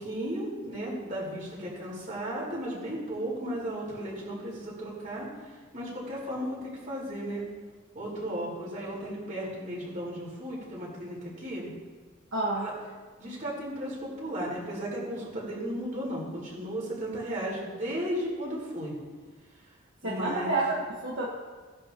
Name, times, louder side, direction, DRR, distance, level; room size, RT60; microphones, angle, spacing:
voice 1, 0.0-5.3 5.7-6.6 6.9-7.4 7.9-11.7 12.6-12.7 13.2-18.9 20.0-20.6, equal, 40° right, -6 dB, 4.5 m, -35 dB
voice 2, 12.3-12.7 20.0-21.3, right 2 dB, 70° right, -4 dB, 1.5 m, -29 dB
17.0 x 11.0 x 3.0 m, 1.4 s
head